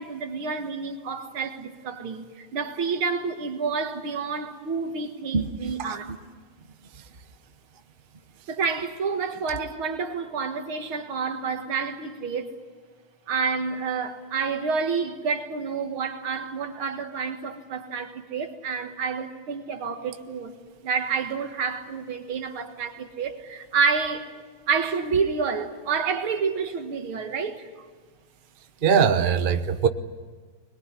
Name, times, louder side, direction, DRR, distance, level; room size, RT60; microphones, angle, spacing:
voice 1, 0.0-6.1 8.5-12.6 13.3-20.5 20.8-24.3 24.7-27.7, right 5 dB, 70° right, 2.5 m, -29 dB
voice 2, 28.8-29.9, right 7 dB, 45° right, 0.7 m, -21 dB
22.5 x 21.5 x 9.9 m
omnidirectional pair, 2.4 m